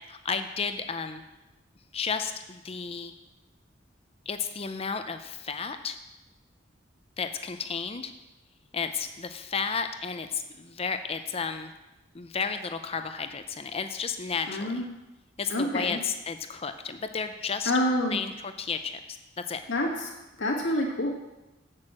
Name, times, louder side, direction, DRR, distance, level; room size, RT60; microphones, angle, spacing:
voice 1, 0.1-1.2 1.9-3.1 4.3-6.0 7.2-8.1 8.7-11.7 12.1-14.9 15.4-17.7 18.1-19.0 19.4-19.6, left 5 dB, 30° left, 8 dB, 0.5 m, -32 dB
voice 2, 14.5-14.9 15.5-16.0 17.7-18.2 19.7-19.9 20.4-21.1, left 1 dB, 75° left, -1 dB, 1.8 m, -27 dB
7.9 x 6.6 x 7.4 m, 1.0 s
head